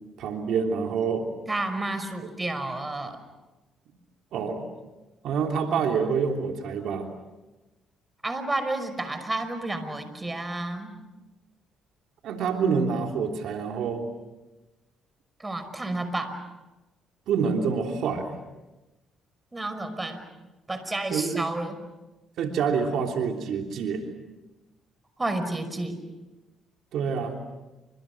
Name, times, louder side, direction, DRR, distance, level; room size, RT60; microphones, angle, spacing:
voice 1, 0.2-1.3 4.3-4.7 5.2-7.1 12.2-14.1 17.3-18.4 21.1-21.5 22.4-24.0 26.9-27.4, right 6 dB, 75° right, 3 dB, 3.2 m, -27 dB
voice 2, 1.5-3.2 8.2-11.0 15.4-16.4 19.5-20.2 20.7-21.8 25.2-26.0, right 2 dB, 20° right, 10 dB, 5.4 m, -31 dB
29.5 x 26.0 x 6.2 m, 1.1 s
supercardioid pair, 70°, 0 cm